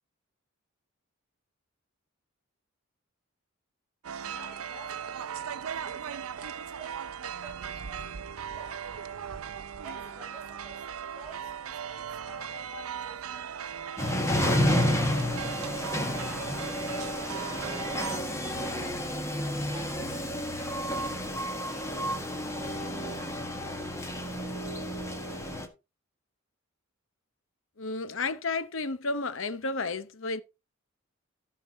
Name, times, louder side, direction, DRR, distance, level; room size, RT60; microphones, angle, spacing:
sound 1, 4.0-18.2, right 8 dB, 85° right, 0.6 m, -38 dB
voice 1, 4.2-9.6 9.8-13.9 19.6-24.1, right 1 dB, 5° right, 6.6 m, -52 dB
sound 2, 14.0-25.7, equal, 15° left, 1.6 m, -30 dB
voice 2, 27.8-30.4, left 3 dB, 65° left, 0.8 m, -32 dB
14.0 x 4.8 x 4.3 m
head